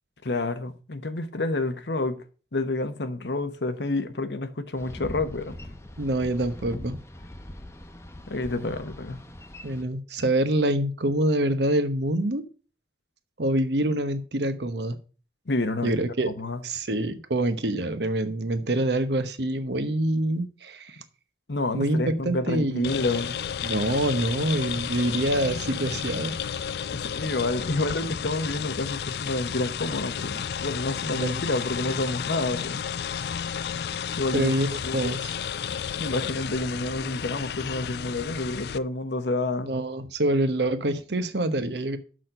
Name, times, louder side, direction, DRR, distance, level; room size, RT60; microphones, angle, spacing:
voice 1, 0.2-2.2 2.5-5.6 8.3-9.2 15.5-16.0 16.4-16.6 21.5-23.4 26.9-32.8 34.2-34.5 34.8-35.1 36.0-39.7, left 2 dB, 80° left, 1.0 m, -29 dB
Boat Water vehicle, 4.8-9.8, left 1 dB, 15° left, 0.7 m, -41 dB
voice 2, 6.0-7.0 9.6-12.4 13.4-15.0 15.8-16.3 16.6-21.0 21.7-22.0 22.2-22.9 23.6-26.3 31.2-31.4 34.3-35.3 39.7-42.0, right 1 dB, 80° right, 1.0 m, -26 dB
sound 1, 22.8-38.8, left 8 dB, 65° left, 0.3 m, -32 dB
6.3 x 6.1 x 6.6 m
head